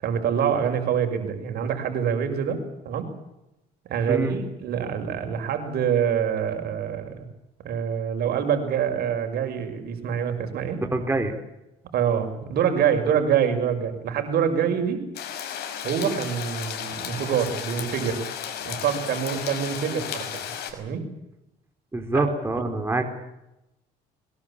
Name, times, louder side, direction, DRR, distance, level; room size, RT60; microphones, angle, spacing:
voice 1, 0.0-3.1 3.9-7.3 7.6-10.8 11.9-15.0 15.8-18.2 18.6-21.1 22.1-22.2 22.6-22.7, right 8 dB, 70° right, 6 dB, 6.1 m, -26 dB
voice 2, 10.9-11.4 21.9-23.0, right 2 dB, 15° right, 5 dB, 3.9 m, -25 dB
sound 1, 15.1-20.7, left 9 dB, 75° left, 5.3 m, -34 dB
23.0 x 22.0 x 8.8 m, 0.92 s
cardioid pair, 110°, 17 cm